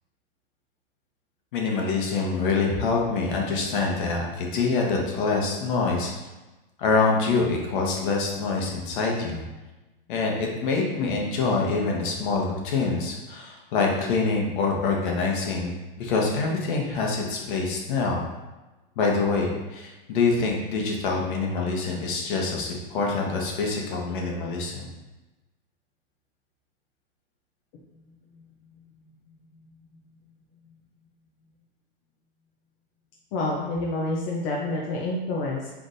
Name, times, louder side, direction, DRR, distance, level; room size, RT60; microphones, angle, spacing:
voice 1, 1.5-6.1 6.8-9.4 10.1-18.2 19.0-24.9, left 4 dB, 60° left, -1 dB, 1.2 m, -25 dB
voice 2, 33.3-35.7, left 2 dB, 40° left, -3 dB, 0.7 m, -28 dB
5.9 x 3.4 x 2.6 m, 1.1 s
supercardioid pair, 150°, 29 cm